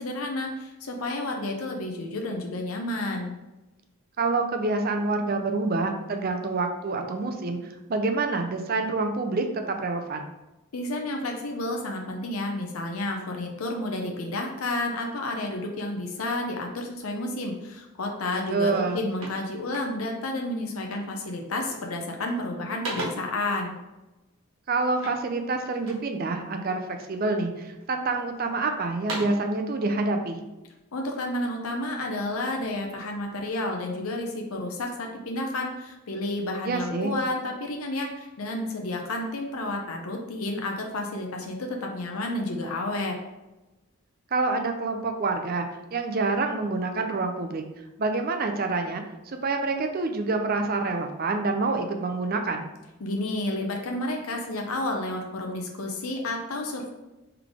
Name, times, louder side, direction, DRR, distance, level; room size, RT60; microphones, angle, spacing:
voice 1, 0.0-3.4 10.7-23.8 30.9-43.2 53.0-56.9, left 2 dB, 90° left, 2 dB, 0.6 m, -31 dB
voice 2, 4.2-10.3 18.5-19.0 24.7-30.4 36.6-37.1 44.3-47.6 48.0-52.7, right 3 dB, 45° right, 5 dB, 0.5 m, -27 dB
sound 1, 18.7-20.3 20.9-21.2 21.6-22.1 22.4-23.4 24.9-26.1 26.6-27.3 27.8-28.5 28.8-29.5, right 1 dB, 70° right, 1.3 m, -38 dB
3.9 x 3.4 x 3.5 m, 1.0 s
head